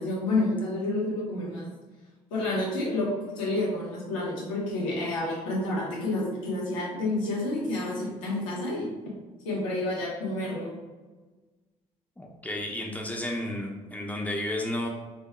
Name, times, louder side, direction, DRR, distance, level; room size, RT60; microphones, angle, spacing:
voice 1, 0.0-1.7 2.3-3.1 3.3-8.9 9.4-10.8, left 2 dB, 75° left, -5 dB, 1.4 m, -29 dB
voice 2, 12.2-14.9, left 1 dB, 10° left, -1 dB, 1.0 m, -32 dB
6.0 x 3.4 x 2.2 m, 1.3 s
figure-of-eight pair, 50°, 17 cm